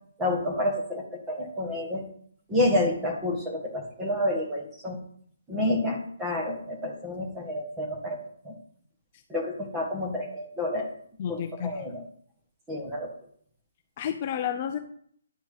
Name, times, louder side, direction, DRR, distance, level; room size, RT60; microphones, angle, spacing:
voice 1, 0.2-2.0 2.5-5.0 5.5-8.6 9.3-10.9 11.3-12.0 12.7-13.1, left 1 dB, 10° right, -1 dB, 1.5 m, -29 dB
voice 2, 11.2-11.9 14.0-14.8, left 9 dB, 30° left, 5 dB, 0.6 m, -31 dB
10.0 x 4.5 x 5.4 m, 0.62 s
hypercardioid pair, 165°, 0 cm